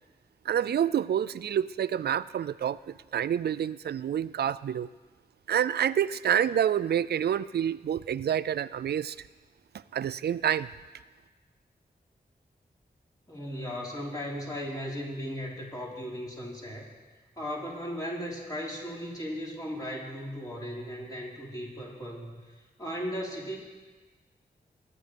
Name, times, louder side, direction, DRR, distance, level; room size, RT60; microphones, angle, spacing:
voice 1, 0.5-4.9 5.5-9.2 9.9-10.7, right 9 dB, 85° right, 17 dB, 0.4 m, -28 dB
voice 2, 13.3-16.9 17.4-22.3 22.8-23.6, equal, 20° left, -4 dB, 4.6 m, -36 dB
22.0 x 9.5 x 5.2 m, 1.3 s
wide cardioid pair, 70°, 16 cm